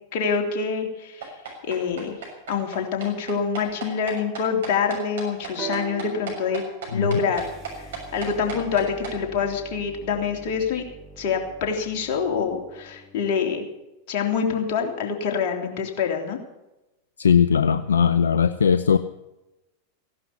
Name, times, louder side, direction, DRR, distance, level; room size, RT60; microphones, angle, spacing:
voice 1, 0.1-1.3 1.6-2.2 2.5-6.6 6.9-7.4 8.1-10.8 11.2-13.7 14.1-16.4, left 6 dB, 50° left, 2 dB, 3.3 m, -26 dB
sound 1, 1.2-9.1, right 6 dB, 65° right, 6.6 m, -36 dB
sound 2, 5.6-9.4 10.3-10.4, right 7 dB, 35° right, 2.2 m, -39 dB
sound 3, 7.3-13.4, right 1 dB, 10° right, 4.9 m, -46 dB
voice 2, 17.2-19.0, left 7 dB, 80° left, 12 dB, 0.6 m, -19 dB
16.5 x 11.5 x 7.0 m, 0.98 s
hypercardioid pair, 95°, 0 cm